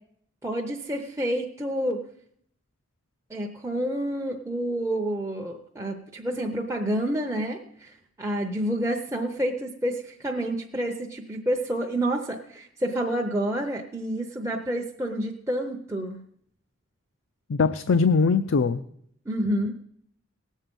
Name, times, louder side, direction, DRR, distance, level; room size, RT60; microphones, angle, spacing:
voice 1, 0.4-2.0 3.3-16.2 19.3-19.7, right 1 dB, 15° right, 0 dB, 0.7 m, -29 dB
voice 2, 17.5-18.8, left 4 dB, 60° left, 9 dB, 0.4 m, -21 dB
18.5 x 7.4 x 5.3 m, 0.69 s
head